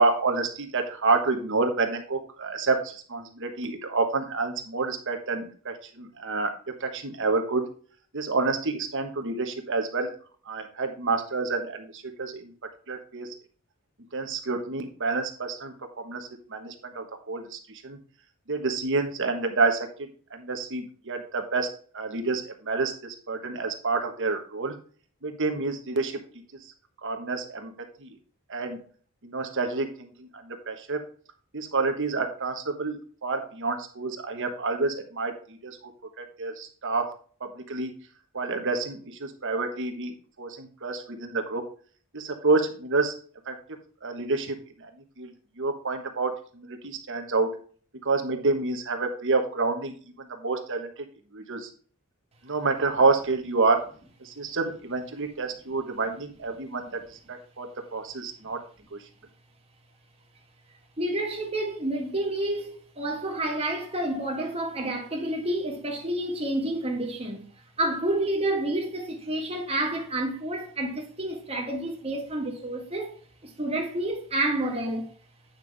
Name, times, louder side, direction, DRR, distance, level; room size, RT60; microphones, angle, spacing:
voice 1, 0.0-7.6 8.1-10.1 10.4-12.5 12.9-13.3 14.1-18.0 18.5-24.8 25.2-26.2 26.6-26.7 27.0-27.7 28.0-28.2 28.5-28.8 29.2-31.0 31.5-35.9 36.2-37.1 37.4-37.9 38.3-41.6 42.1-43.1 43.5-43.6 44.0-44.9 45.2-47.5 48.0-50.9 51.3-51.7 52.4-53.8 54.2-58.6 58.9-59.0, right 3 dB, 60° right, 1.3 m, -28 dB
voice 2, 61.0-67.4 67.8-73.2 73.4-75.1, right 1 dB, 30° right, 1.9 m, -29 dB
9.1 x 5.9 x 3.4 m
head